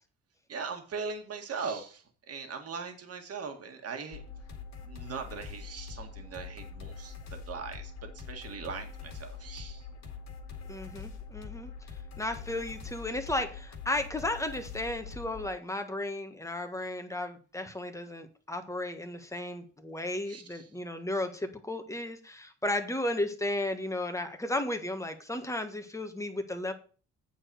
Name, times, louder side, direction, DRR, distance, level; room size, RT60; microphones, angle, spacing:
voice 1, 0.5-4.2 4.8-7.1 7.5-7.9 8.3-9.9 20.3-20.7, right 5 dB, 50° right, 4 dB, 1.9 m, -40 dB
sound 1, 4.1-15.5, left 5 dB, 65° left, 2.2 m, -44 dB
voice 2, 10.7-11.7 12.2-26.7, left 1 dB, 10° left, 6 dB, 1.4 m, -34 dB
8.8 x 4.6 x 6.4 m, 0.39 s
cardioid pair, 90°, 30 cm